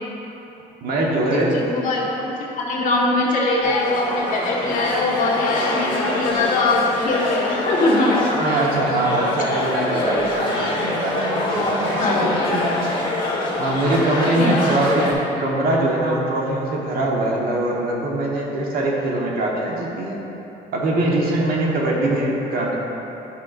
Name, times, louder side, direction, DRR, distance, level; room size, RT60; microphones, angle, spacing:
voice 1, 0.8-1.6 8.3-12.9 13.6-20.2 20.7-22.8, right 2 dB, 60° right, -3 dB, 1.4 m, -22 dB
voice 2, 1.3-8.1 12.0-12.2 14.4-14.7, left 2 dB, 50° left, -4 dB, 1.6 m, -22 dB
sound 1, 3.6-15.1, left 2 dB, 30° left, 1.6 m, -24 dB
10.5 x 5.7 x 2.6 m, 3.0 s
cardioid pair, 110°, 17 cm